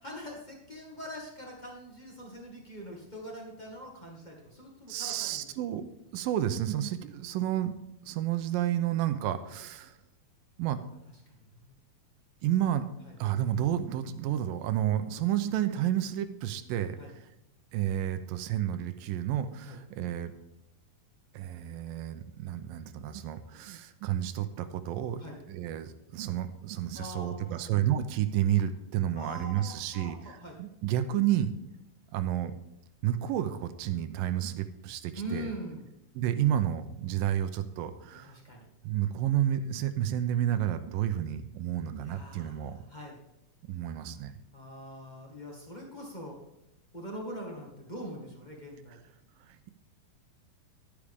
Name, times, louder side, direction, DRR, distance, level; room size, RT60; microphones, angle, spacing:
voice 1, 0.0-5.5 10.9-11.0 11.4-11.8 13.0-13.1 17.0-17.1 19.6-19.8 25.2-25.4 26.9-28.1 29.1-30.6 35.1-35.8 38.2-38.6 42.0-43.2 44.5-46.4 46.9-49.0, equal, 25° left, -2 dB, 0.9 m, -43 dB
voice 2, 4.9-5.8 6.1-7.7 8.1-10.0 10.6-10.8 12.4-12.9 13.2-17.0 17.7-20.3 21.3-25.2 25.5-31.5 32.1-32.5 33.0-35.5 36.2-38.3 38.8-42.8 43.7-44.3, right 11 dB, 80° right, 11 dB, 2.3 m, -30 dB
11.5 x 9.8 x 3.6 m, 0.87 s
omnidirectional pair, 4.3 m